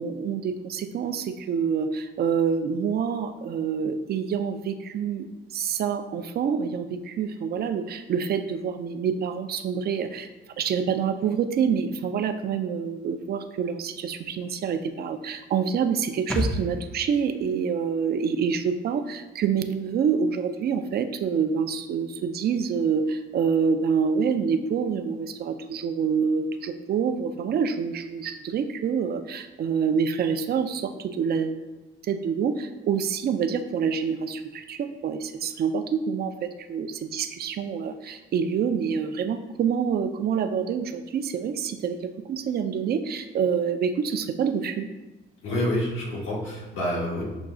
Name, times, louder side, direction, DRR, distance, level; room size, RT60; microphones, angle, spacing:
voice 1, 0.0-5.3 5.5-10.3 10.6-31.6 32.0-44.9, right 6 dB, 50° right, 9 dB, 0.4 m, -27 dB
sound 1, 16.3-19.8 20.1-20.2, left 1 dB, 5° left, 0.5 m, -34 dB
voice 2, 45.4-47.2, left 1 dB, 85° left, -4 dB, 1.4 m, -27 dB
6.0 x 2.3 x 3.7 m, 1.1 s
cardioid pair, 90°, 20 cm